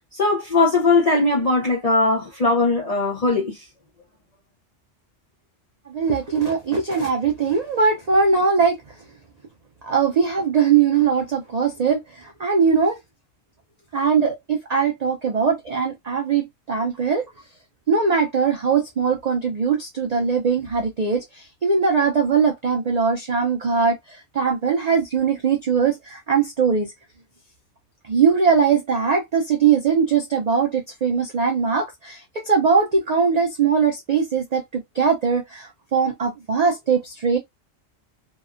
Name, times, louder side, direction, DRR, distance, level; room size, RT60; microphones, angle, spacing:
voice 1, 0.1-3.6, left 3 dB, 45° left, 0.5 m, -19 dB
voice 2, 5.9-8.8 9.8-13.0 13.9-17.3 17.9-26.9 28.0-37.4, right 5 dB, 70° right, 0.3 m, -21 dB
2.8 x 2.0 x 2.4 m
omnidirectional pair, 1.3 m